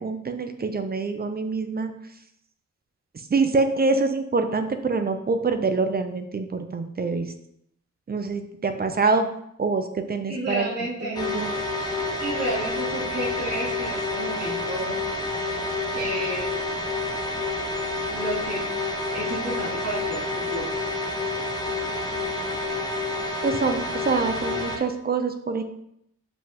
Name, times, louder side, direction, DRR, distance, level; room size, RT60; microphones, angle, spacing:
voice 1, 0.0-1.9 3.3-7.3 8.1-9.3 9.6-10.7 11.0-11.5 23.4-25.6, right 4 dB, 30° right, 7 dB, 0.5 m, -25 dB
voice 2, 10.3-11.2 12.2-15.0 15.9-16.5 18.1-18.7 19.1-20.7, right 1 dB, 55° right, -9 dB, 2.7 m, -31 dB
sound 1, 11.1-24.8, left 2 dB, 15° left, 0.9 m, -29 dB
7.5 x 5.3 x 2.9 m, 0.74 s
wide cardioid pair, 175°, 30 cm